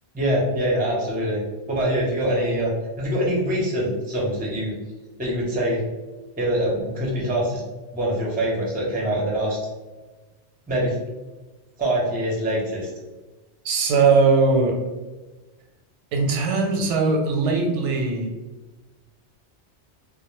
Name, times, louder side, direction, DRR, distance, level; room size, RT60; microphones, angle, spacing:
voice 1, 0.1-1.4 1.7-2.7 3.0-4.7 5.2-5.8 6.4-7.6 7.9-9.6 10.7-11.0 11.8-12.9, right 1 dB, 15° right, -4 dB, 0.4 m, -24 dB
voice 2, 13.6-14.8 16.1-18.3, right 4 dB, 85° right, 2 dB, 0.9 m, -20 dB
2.1 x 2.0 x 3.0 m, 1.2 s
omnidirectional pair, 1.2 m